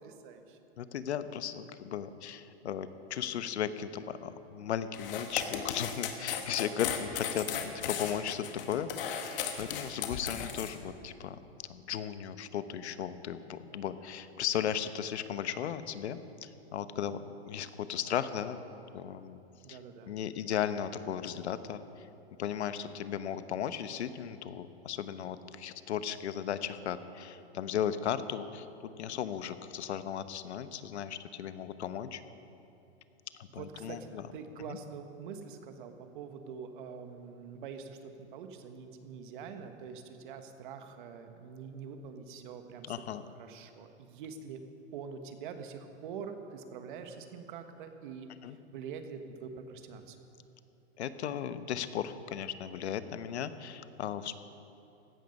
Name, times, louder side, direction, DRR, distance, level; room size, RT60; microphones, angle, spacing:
voice 1, 0.0-0.6 19.6-20.1 33.6-44.6 44.9-48.3 48.7-50.2, right 6 dB, 50° right, 7 dB, 1.4 m, -45 dB
voice 2, 0.8-8.9 9.2-11.4 11.7-18.6 18.9-19.4 19.7-19.8 20.1-22.1 22.4-28.7 29.0-32.2 33.4-34.3 34.7-34.8 42.8-43.2 48.4-48.6 51.0-54.4, left 9 dB, 80° left, 12 dB, 1.0 m, -36 dB
sound 1, 4.9-10.7, left 8 dB, 55° left, 1.7 m, -36 dB
16.0 x 13.0 x 5.4 m, 2.9 s
hypercardioid pair, 155°, 33 cm